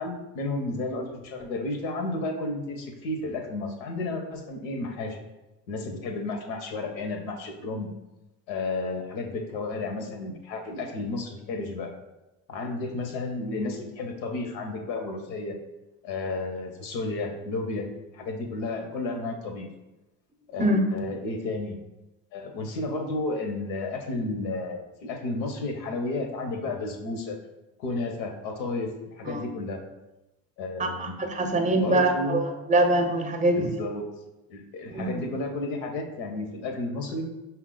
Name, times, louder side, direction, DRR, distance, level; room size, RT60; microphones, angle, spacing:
voice 1, 0.0-5.2 5.7-7.9 8.5-11.9 12.5-15.6 16.0-17.9 18.1-19.7 20.5-21.8 22.3-27.4 27.8-29.8 30.6-31.2 31.8-32.4 33.5-34.0 34.5-37.2, left 2 dB, 85° left, 4 dB, 0.9 m, -32 dB
voice 2, 30.8-33.8 34.9-35.1, right 1 dB, 15° right, 5 dB, 0.6 m, -24 dB
5.6 x 2.3 x 3.8 m, 1.0 s
hypercardioid pair, 75°, 50 cm